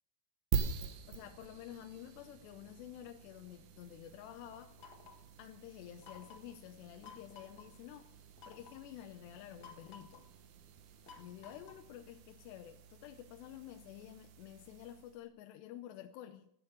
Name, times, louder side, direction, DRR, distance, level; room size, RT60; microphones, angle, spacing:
sound 1, 0.5-15.3, right 7 dB, 65° right, 2.1 m, -45 dB
voice 1, 1.1-4.7 5.4-8.1 8.5-10.2 11.2-16.5, left 11 dB, 85° left, 7 dB, 2.9 m, -50 dB
sound 2, 4.8-5.3 6.0-6.6 7.0-7.7 8.4-8.8 9.6-10.3 11.1-11.9, left 5 dB, 60° left, 1.3 m, -55 dB
15.5 x 8.3 x 7.9 m, 0.74 s
omnidirectional pair, 4.8 m